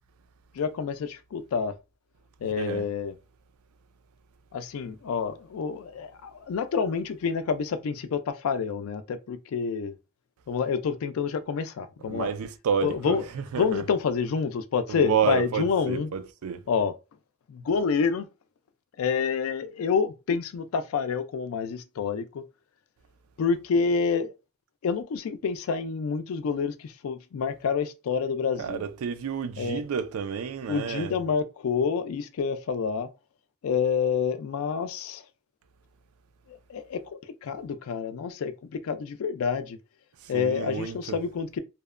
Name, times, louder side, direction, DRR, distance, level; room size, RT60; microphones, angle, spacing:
voice 1, 0.5-1.8 2.4-3.1 4.5-10.0 10.5-12.3 12.8-13.2 13.5-16.1 16.7-16.9 17.5-18.3 19.0-22.4 23.4-24.3 24.8-28.8 29.6-29.8 30.7-33.1 33.6-35.2 36.5-39.8 40.3-41.6, left 5 dB, 75° left, 0.3 m, -28 dB
voice 2, 2.5-2.9 12.1-13.8 14.9-16.6 28.6-31.2 40.2-41.0, right 7 dB, 90° right, 0.4 m, -30 dB
2.7 x 2.1 x 2.3 m
head